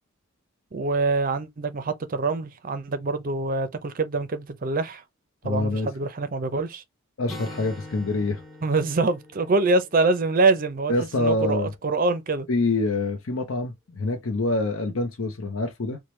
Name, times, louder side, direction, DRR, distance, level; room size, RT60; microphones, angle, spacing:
voice 1, 0.7-5.0 5.4-6.8 8.6-12.5, right 3 dB, 40° right, 0.5 m, -25 dB
voice 2, 5.4-5.9 7.2-8.4 10.9-11.7 12.5-16.0, left 2 dB, 70° left, 0.7 m, -26 dB
Acoustic guitar, 7.3-11.0, left 1 dB, ahead, 0.7 m, -43 dB
4.4 x 2.2 x 3.1 m
head